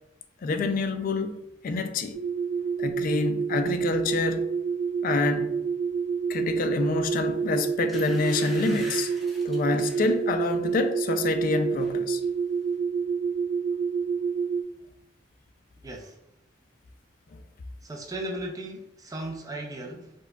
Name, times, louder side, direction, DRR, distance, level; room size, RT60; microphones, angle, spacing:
voice 1, 0.4-2.2 2.8-4.5 5.0-5.6 6.3-9.1 9.4-12.2, left 3 dB, 45° left, 0.3 m, -27 dB
sound 1, 2.1-14.6, right 6 dB, 75° right, 0.4 m, -28 dB
sound 2, 7.3-7.4 7.9-10.2 10.7-10.9 11.2-11.9 12.2-12.3, left 1 dB, ahead, 0.8 m, -43 dB
voice 2, 15.8-16.2 17.8-20.1, right 1 dB, 20° right, 0.4 m, -36 dB
4.4 x 2.2 x 2.3 m
head